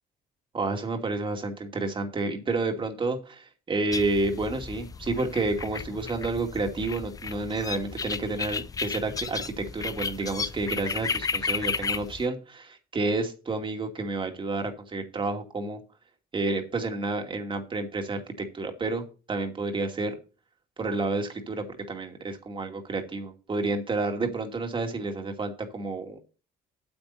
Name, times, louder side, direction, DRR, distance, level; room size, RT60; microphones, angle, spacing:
voice 1, 0.5-15.8 16.3-20.1 20.8-26.2, right 3 dB, 30° right, 4 dB, 2.5 m, -30 dB
sound 1, 3.9-12.3, left 5 dB, 20° left, 0.4 m, -33 dB
8.8 x 8.3 x 4.2 m, 0.34 s
cardioid pair, 110°, 17 cm